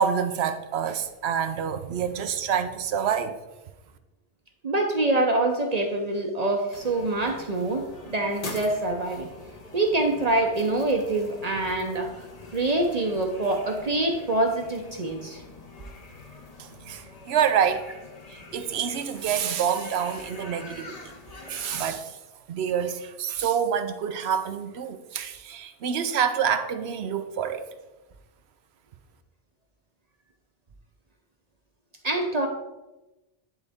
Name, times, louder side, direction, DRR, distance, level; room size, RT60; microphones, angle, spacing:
voice 1, 0.0-3.4 16.6-17.9 18.3-21.1 21.5-22.2 22.5-27.7, right 8 dB, 85° right, 0.9 m, -27 dB
voice 2, 4.6-9.3 9.7-12.3 12.5-15.4 32.0-32.5, right 2 dB, 45° right, 0.7 m, -25 dB
sound 1, 6.7-21.9, left 3 dB, 40° left, 0.9 m, -44 dB
10.5 x 4.0 x 3.5 m
omnidirectional pair, 1.1 m